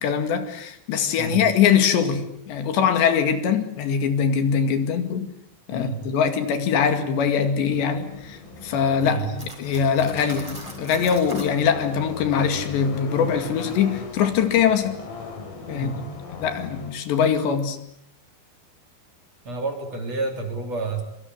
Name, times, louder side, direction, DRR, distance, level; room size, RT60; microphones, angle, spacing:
voice 1, 0.0-5.3 5.7-15.0 15.7-16.1 16.4-17.8, left 7 dB, 75° left, 4.3 m, -22 dB
voice 2, 5.7-6.0 9.0-9.3 15.7-16.0 19.4-21.0, right 3 dB, 40° right, 4.5 m, -29 dB
sound 1, 7.7-16.9, left 4 dB, 55° left, 5.7 m, -38 dB
Cutlery silverware, 9.4-11.6, equal, 5° right, 5.6 m, -39 dB
26.0 x 24.5 x 8.3 m
omnidirectional pair, 5.2 m